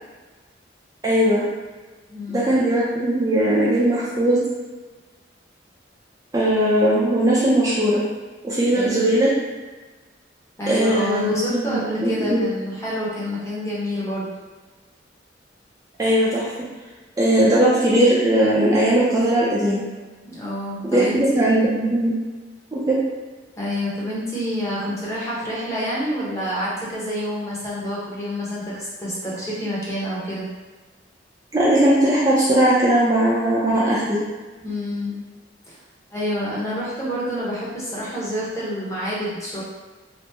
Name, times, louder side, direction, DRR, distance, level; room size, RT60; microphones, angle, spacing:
voice 1, 1.0-1.5 2.3-4.4 6.3-8.0 8.4-9.3 10.7-12.4 16.0-16.5 17.2-19.8 20.9-22.1 22.7-23.0 31.5-34.2, right 1 dB, 20° right, -8 dB, 0.5 m, -19 dB
voice 2, 2.1-2.4 8.7-9.1 10.6-14.3 20.2-21.7 23.6-30.5 34.6-35.2 35.7-35.8 36.1-39.6, equal, 15° left, -7 dB, 0.8 m, -28 dB
2.9 x 2.0 x 3.3 m, 1.3 s
head